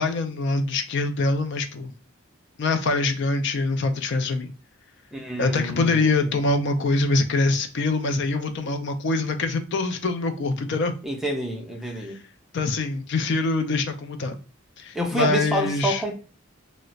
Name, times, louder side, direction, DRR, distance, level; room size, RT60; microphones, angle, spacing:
voice 1, 0.0-1.9 2.6-4.5 5.4-10.9 12.0-12.1 12.5-14.4 14.8-16.0, left 3 dB, 60° left, 0.4 m, -24 dB
voice 2, 5.1-6.1 6.4-6.5 11.0-12.2 14.9-16.2, right 1 dB, ahead, 0.4 m, -28 dB
2.4 x 2.0 x 3.9 m
head